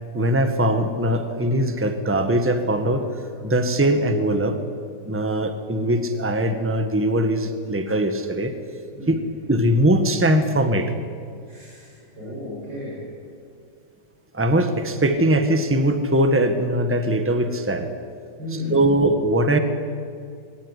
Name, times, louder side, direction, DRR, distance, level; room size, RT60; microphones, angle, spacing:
voice 1, 0.1-3.1 3.4-4.6 5.0-8.5 9.1-9.2 9.5-10.9 14.3-17.9 18.7-19.6, right 1 dB, 5° right, 7 dB, 1.4 m, -21 dB
voice 2, 11.4-13.0 18.4-18.9, left 3 dB, 75° right, -5 dB, 7.2 m, -33 dB
22.5 x 18.0 x 9.9 m, 2.4 s
omnidirectional pair, 2.0 m